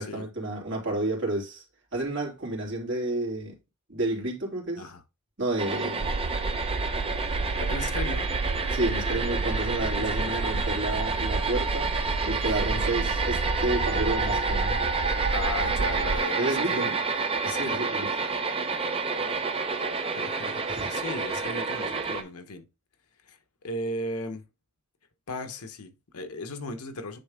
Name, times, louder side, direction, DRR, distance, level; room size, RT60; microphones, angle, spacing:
voice 1, 0.0-1.6 1.9-3.5 3.9-4.9 5.4-6.2 8.7-11.9 12.2-14.8 16.4-17.0 17.4-18.1 20.7-21.0, right 2 dB, 55° right, 3.0 m, -30 dB
sound 1, 5.6-22.2, right 4 dB, 25° right, 0.8 m, -29 dB
sound 2, 6.0-16.2, right 3 dB, 75° right, 0.5 m, -31 dB
voice 2, 7.6-8.3 10.0-10.6 12.7-13.1 15.3-16.9 17.4-18.0 19.2-19.4 20.1-22.6 23.2-23.4 23.6-24.4 25.3-27.2, left 2 dB, 85° left, 1.0 m, -37 dB
9.4 x 3.6 x 3.6 m
head